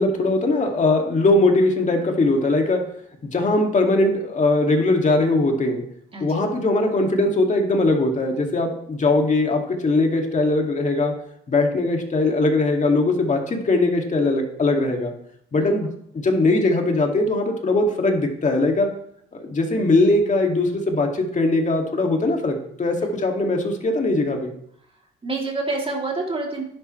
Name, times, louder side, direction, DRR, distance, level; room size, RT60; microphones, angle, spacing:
voice 1, 0.0-2.8 3.2-5.8 6.2-11.1 11.5-15.1 15.5-18.9 19.3-24.5, left 2 dB, 40° left, 2 dB, 2.3 m, -20 dB
voice 2, 6.1-6.4 15.5-15.7 23.0-23.2 25.2-26.6, right 3 dB, 30° right, -1 dB, 3.1 m, -28 dB
11.0 x 11.0 x 3.3 m, 0.70 s
cardioid pair, 90°, 20 cm